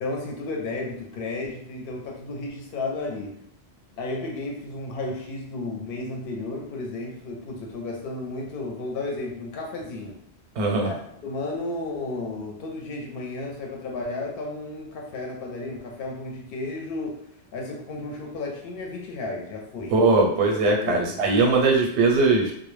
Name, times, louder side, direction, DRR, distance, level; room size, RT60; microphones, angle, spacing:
voice 1, 0.0-3.4 4.0-10.2 10.8-10.9 11.2-20.2 20.8-21.2, left 2 dB, 65° left, 0 dB, 0.7 m, -33 dB
voice 2, 10.6-10.9 19.9-22.5, right 3 dB, 85° right, 1 dB, 0.9 m, -20 dB
2.1 x 2.0 x 3.1 m, 0.71 s
omnidirectional pair, 1.1 m